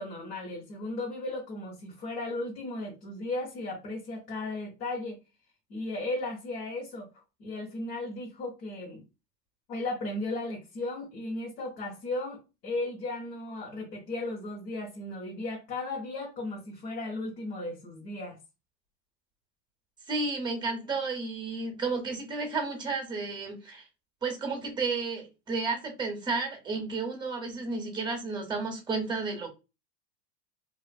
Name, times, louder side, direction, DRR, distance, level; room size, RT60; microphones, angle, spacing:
voice 1, 0.0-5.2 5.7-7.1 7.4-9.0 9.7-18.4, left 2 dB, 80° left, 1.0 m, -35 dB
voice 2, 20.1-23.8 24.2-29.5, right 4 dB, 10° right, 0.5 m, -32 dB
2.4 x 2.4 x 2.2 m
hypercardioid pair, 110°, 49 cm